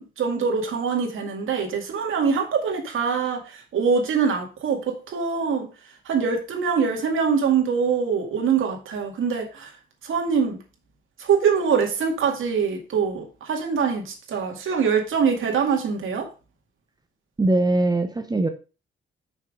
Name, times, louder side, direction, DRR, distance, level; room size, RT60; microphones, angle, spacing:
voice 1, 0.0-5.7 6.1-9.7 10.0-10.6 11.2-16.3, right 6 dB, 80° right, 2.2 m, -24 dB
voice 2, 17.4-18.5, right 2 dB, 20° right, 0.8 m, -21 dB
6.3 x 5.8 x 5.2 m
cardioid pair, 125°, 21 cm